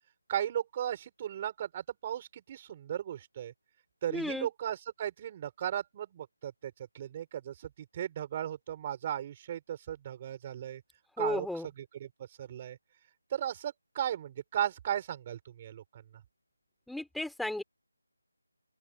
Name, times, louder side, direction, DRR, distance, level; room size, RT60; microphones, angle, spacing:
voice 1, 0.3-3.5 4.0-10.8 11.2-11.5 11.8-12.1 12.4-12.8 13.3-16.0, right 10 dB, 15° right, 6.5 m, -36 dB
voice 2, 4.1-4.5 11.2-11.7 16.9-17.6, left 1 dB, ahead, 4.4 m, -34 dB
open air
figure-of-eight pair, 175°, 0 cm